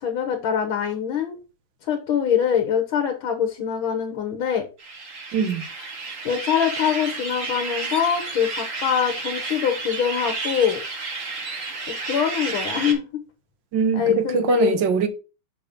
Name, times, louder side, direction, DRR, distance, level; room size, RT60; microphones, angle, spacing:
voice 1, 0.0-1.4 1.8-4.7 6.3-10.8 12.1-13.2 13.9-14.8, left 8 dB, 75° left, 1.9 m, -23 dB
sound 1, 4.8-12.9, right 3 dB, 40° right, 1.7 m, -31 dB
voice 2, 5.3-5.6 13.7-15.1, right 6 dB, 65° right, 1.6 m, -22 dB
6.7 x 4.1 x 5.1 m
omnidirectional pair, 2.3 m